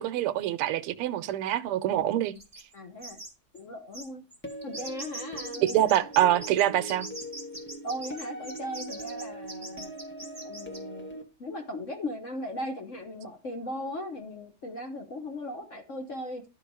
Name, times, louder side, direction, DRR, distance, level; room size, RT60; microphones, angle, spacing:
voice 1, 0.0-2.3 5.6-7.1, right 12 dB, 90° right, 1.6 m, -25 dB
sound 1, 2.4-2.7 3.0-3.3 3.6-3.7 3.9-10.8, right 2 dB, 10° right, 2.8 m, -41 dB
voice 2, 2.7-3.2 3.5-4.2 4.6-5.8 7.8-9.9 10.4-16.5, left 1 dB, 50° left, 1.0 m, -38 dB
sound 2, 4.4-11.2, right 1 dB, 10° left, 0.6 m, -41 dB
12.0 x 4.5 x 4.7 m
omnidirectional pair, 2.4 m